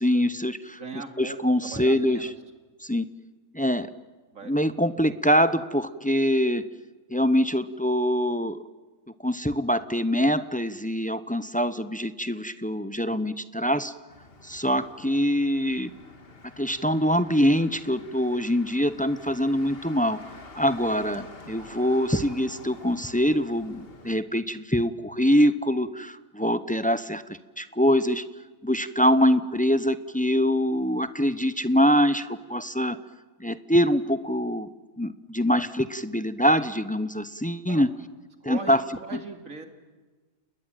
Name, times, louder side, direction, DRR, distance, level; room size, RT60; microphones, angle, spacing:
voice 1, 0.0-0.8 1.2-2.2 2.8-3.1 3.5-3.9 4.4-6.6 7.1-8.6 9.2-13.9 14.4-15.9 16.6-20.2 20.5-28.2 28.6-33.0 33.4-34.7 35.0-37.9 38.4-38.8, equal, 10° left, 13 dB, 0.6 m, -24 dB
voice 2, 0.8-2.3 4.3-4.5 37.7-37.8 38.4-39.7, right 3 dB, 75° right, 5 dB, 2.9 m, -39 dB
Motor vehicle (road), 14.1-24.2, left 3 dB, 45° left, 2.1 m, -48 dB
30.0 x 20.5 x 9.1 m, 1.3 s
omnidirectional pair, 1.4 m